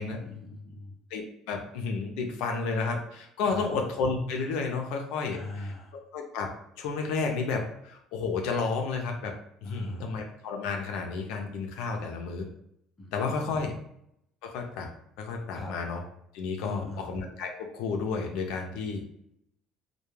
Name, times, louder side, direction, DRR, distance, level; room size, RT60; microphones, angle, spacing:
voice 1, 0.0-0.9 3.4-3.7 5.3-5.9 9.6-10.1 13.0-13.8 15.5-15.7 16.6-17.1 18.8-19.0, left 2 dB, 20° left, -1 dB, 0.5 m, -40 dB
voice 2, 1.1-5.7 6.1-9.3 9.6-12.5 13.1-13.7 14.4-14.9 15.2-16.0 16.3-19.0, left 4 dB, 75° left, 3 dB, 0.4 m, -31 dB
2.2 x 2.1 x 3.1 m, 0.75 s
cardioid pair, 155°, 0 cm